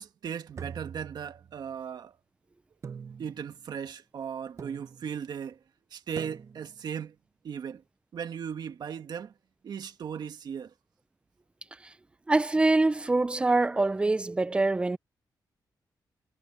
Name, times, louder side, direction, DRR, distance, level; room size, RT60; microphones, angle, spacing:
voice 1, 0.0-2.2 3.2-5.6 5.9-7.1 7.4-7.8 8.1-9.3 9.6-10.7, right 7 dB, 65° right, 1.6 m, -37 dB
sound 1, 0.5-1.8 2.8-3.6 4.6-5.2 6.2-6.8, right 6 dB, 45° right, 0.8 m, -44 dB
voice 2, 12.3-15.0, right 2 dB, 15° right, 0.5 m, -24 dB
wide cardioid pair, 150°, 8 cm